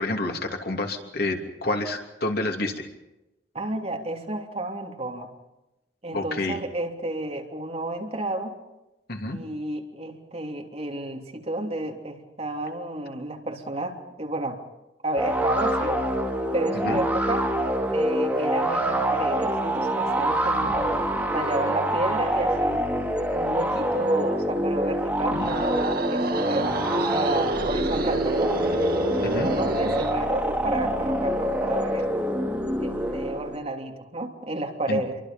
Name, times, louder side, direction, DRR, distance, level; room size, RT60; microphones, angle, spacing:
voice 1, 0.0-2.9 6.1-6.6 9.1-9.4 16.7-17.0 29.2-29.5 34.9-35.0, left 2 dB, 60° left, 3 dB, 3.0 m, -29 dB
voice 2, 3.5-5.3 6.0-8.5 9.3-14.6 15.0-16.0 16.5-17.4 17.9-21.1 21.3-22.9 23.3-28.5 29.4-32.1 32.8-35.2, right 2 dB, 35° right, 2 dB, 3.2 m, -31 dB
sound 1, 15.2-33.6, equal, 10° right, 3.2 m, -26 dB
sound 2, 25.3-30.2, right 2 dB, 60° right, 1.7 m, -29 dB
28.0 x 24.0 x 5.4 m, 0.95 s
head